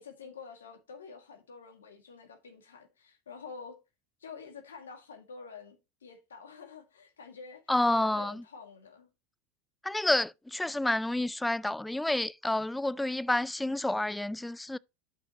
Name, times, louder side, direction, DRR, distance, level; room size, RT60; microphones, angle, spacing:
voice 1, 0.0-3.8 4.2-9.1, left 5 dB, 90° left, 1.9 m, -48 dB
voice 2, 7.7-8.4 9.8-14.8, left 1 dB, 5° left, 0.3 m, -29 dB
11.5 x 5.6 x 2.9 m
hypercardioid pair, 90°, 0 cm